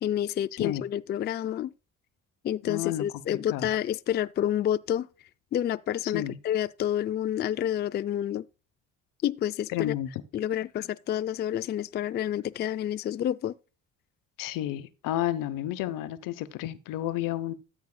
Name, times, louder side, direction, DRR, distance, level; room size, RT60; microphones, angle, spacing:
voice 1, 0.0-1.7 2.4-5.1 5.5-8.4 9.2-9.9 10.3-13.5, left 11 dB, 35° left, 0.4 m, -29 dB
voice 2, 2.6-3.0 3.5-3.7 6.0-6.4 9.7-10.2 14.4-17.5, left 13 dB, 85° left, 1.0 m, -31 dB
13.5 x 8.2 x 2.3 m
cardioid pair, 125°, 32 cm